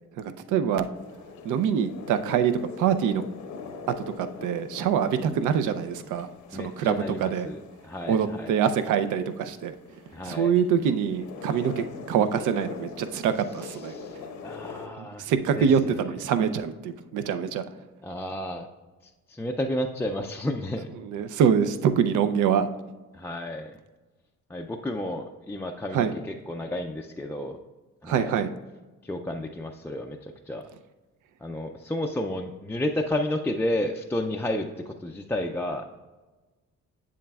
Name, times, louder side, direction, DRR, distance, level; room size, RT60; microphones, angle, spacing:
voice 1, 0.2-0.9 1.4-2.5 2.8-3.2 4.2-7.5 8.1-9.7 10.2-13.9 15.0-17.6 21.0-22.7 25.9-26.2 28.0-28.5, right 8 dB, 80° right, 11 dB, 0.5 m, -25 dB
sound 1, 0.9-14.9, left 5 dB, 85° left, 0.8 m, -43 dB
voice 2, 6.5-8.5 10.1-10.5 13.8-14.2 14.4-15.3 15.6-16.0 18.0-18.7 19.3-20.9 23.1-23.8 24.5-27.6 28.0-28.3 29.0-30.6 31.4-35.8, left 1 dB, 10° left, 1 dB, 0.3 m, -31 dB
7.6 x 7.3 x 2.3 m, 1.2 s
cardioid pair, 90°, 30 cm